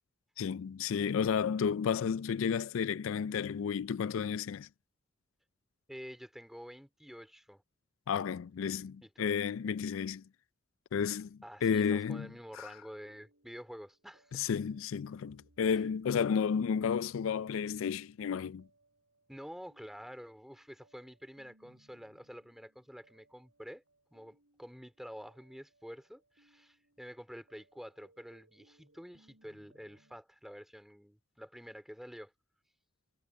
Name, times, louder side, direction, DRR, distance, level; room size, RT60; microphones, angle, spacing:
voice 1, 0.4-4.7 8.1-10.2 10.9-12.3 12.6-12.7 14.3-18.7, left 7 dB, 90° left, 0.4 m, -32 dB
voice 2, 5.9-7.6 9.0-9.3 11.4-14.4 15.7-15.8 19.3-23.8 24.1-32.3, equal, ahead, 2.7 m, -49 dB
sound 1, 12.9-30.2, right 1 dB, 85° right, 7.1 m, -69 dB
head